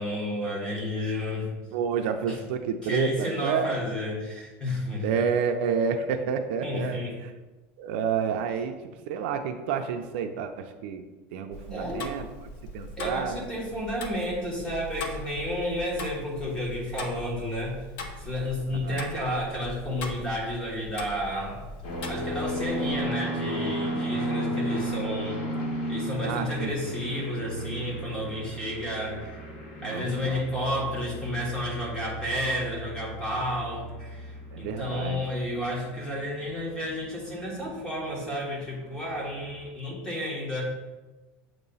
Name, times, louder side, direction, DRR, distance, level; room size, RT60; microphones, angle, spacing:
voice 1, 0.0-1.5 2.3-2.4 2.8-5.2 6.6-7.1 11.7-12.0 13.0-17.8 18.2-21.6 22.1-25.4 25.9-29.2 29.8-40.6, left 1 dB, 15° left, -4 dB, 1.5 m, -31 dB
voice 2, 1.7-3.8 5.0-7.0 7.8-8.7 9.1-11.0 11.3-12.3 12.7-13.4 18.8-19.1 26.2-27.2 29.8-30.4 34.5-35.2, right 6 dB, 70° right, 6 dB, 0.5 m, -29 dB
Tick-tock, 11.5-22.9, left 2 dB, 55° left, 0.8 m, -41 dB
sound 1, 21.8-38.9 39.1-39.6, equal, 85° left, 1.6 m, -34 dB
7.3 x 3.0 x 5.4 m, 1.2 s
cardioid pair, 175°, 6 cm